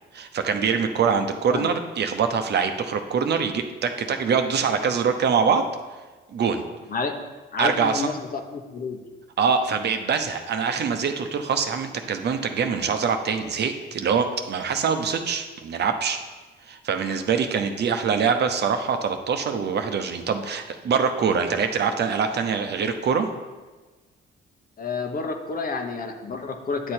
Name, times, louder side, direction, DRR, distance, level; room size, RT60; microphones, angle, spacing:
voice 1, 0.1-5.6 6.3-6.6 7.6-8.1 9.4-16.2 16.7-23.3, right 6 dB, 55° right, 6 dB, 0.9 m, -24 dB
voice 2, 7.5-9.0 24.8-26.9, left 4 dB, 45° left, 5 dB, 1.1 m, -29 dB
9.9 x 6.6 x 4.4 m, 1.3 s
cardioid pair, 90°, 20 cm